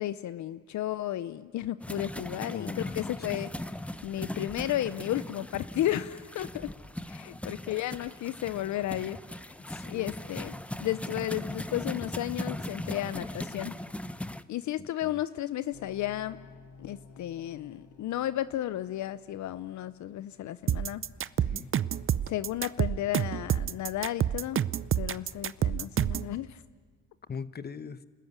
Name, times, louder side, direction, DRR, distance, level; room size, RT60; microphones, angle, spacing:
voice 1, 0.0-3.5 4.0-6.7 7.1-9.2 9.8-10.5 10.8-13.7 14.5-16.4 16.8-21.0 22.3-24.6 25.0-26.6, left 13 dB, 70° left, 14 dB, 0.7 m, -33 dB
sound 1, 1.8-14.4, left 1 dB, 5° left, 0.7 m, -39 dB
voice 2, 2.5-3.3 9.7-10.1 14.8-15.2 21.4-21.7 27.3-28.0, left 6 dB, 30° left, 14 dB, 1.0 m, -41 dB
sound 2, 15.7-21.7, left 4 dB, 90° left, 4.5 m, -55 dB
sound 3, 20.7-26.3, right 10 dB, 45° right, 0.6 m, -28 dB
30.0 x 14.0 x 9.5 m, 1.4 s
cardioid pair, 90°, 30 cm